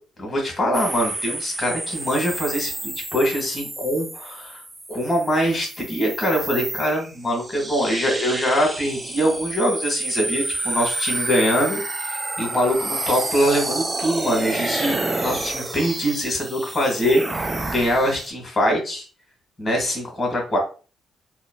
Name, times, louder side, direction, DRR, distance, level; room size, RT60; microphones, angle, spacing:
voice 1, 0.2-4.6 4.9-19.0 19.6-20.6, equal, 30° left, 1 dB, 1.4 m, -23 dB
sound 1, 0.7-18.3, right 2 dB, 20° right, 0.4 m, -29 dB
3.0 x 2.2 x 2.3 m, 0.36 s
cardioid pair, 90°, 0 cm